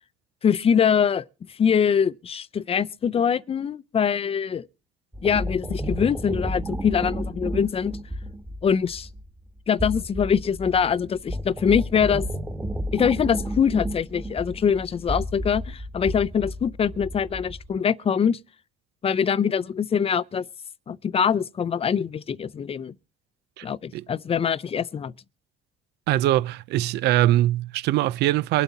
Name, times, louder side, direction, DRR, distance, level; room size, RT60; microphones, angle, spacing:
voice 1, 0.4-4.7 5.2-8.0 8.6-9.1 9.7-12.3 12.9-18.4 19.0-20.5 20.9-22.9 23.6-25.1, left 7 dB, 35° left, 0.7 m, -23 dB
sound 1, 5.1-17.8, equal, 10° right, 1.7 m, -32 dB
voice 2, 26.1-28.6, right 14 dB, 80° right, 0.6 m, -22 dB
24.0 x 8.2 x 4.1 m
cardioid pair, 110°, 17 cm